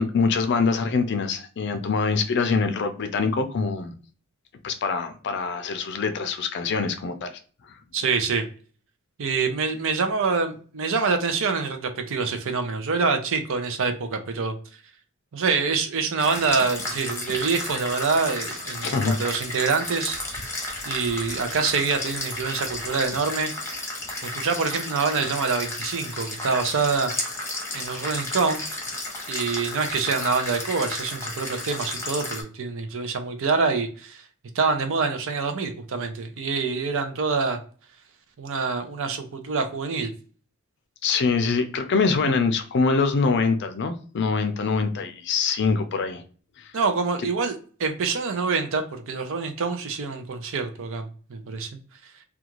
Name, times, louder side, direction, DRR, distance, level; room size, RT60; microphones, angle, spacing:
voice 1, 0.0-3.9 4.6-7.3 18.8-19.2 41.0-46.2 46.6-46.7, left 4 dB, 55° left, 0.4 m, -24 dB
voice 2, 7.9-8.5 9.2-14.6 15.3-20.4 20.9-23.5 24.2-27.1 27.7-28.8 29.3-34.2 34.5-37.6 38.4-40.1 46.7-51.7, right 4 dB, 65° right, 0.5 m, -26 dB
sound 1, 16.2-32.4, left 2 dB, 10° left, 0.8 m, -33 dB
2.4 x 2.3 x 2.9 m
head